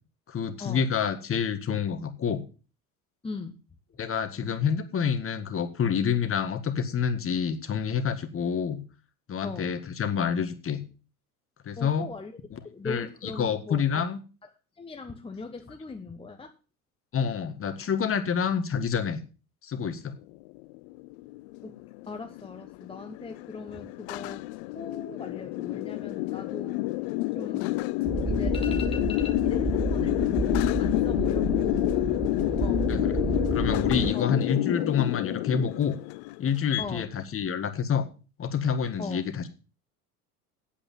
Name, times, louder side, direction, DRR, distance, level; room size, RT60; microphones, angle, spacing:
voice 1, 0.3-2.4 4.0-8.8 9.3-10.8 11.6-12.1 12.5-14.2 17.1-19.2 19.6-20.1 32.9-33.1 33.5-36.0 36.4-38.1 38.4-39.5, left 7 dB, 30° left, 10 dB, 1.8 m, -28 dB
voice 2, 3.2-3.6 9.4-9.7 11.8-12.3 12.6-14.0 14.8-16.5 21.6-21.8 22.1-24.4 24.7-26.8 27.3-27.8 28.2-32.0 32.6-32.8 34.1-34.3 36.8-37.1 39.0-39.2, left 4 dB, 10° left, 5 dB, 1.0 m, -39 dB
sound 1, 20.5-36.8, left 20 dB, 50° left, 0.6 m, -29 dB
sound 2, 28.0-34.1, right 4 dB, 10° right, 0.5 m, -31 dB
8.6 x 8.1 x 7.6 m, 0.35 s
hypercardioid pair, 80°, 44 cm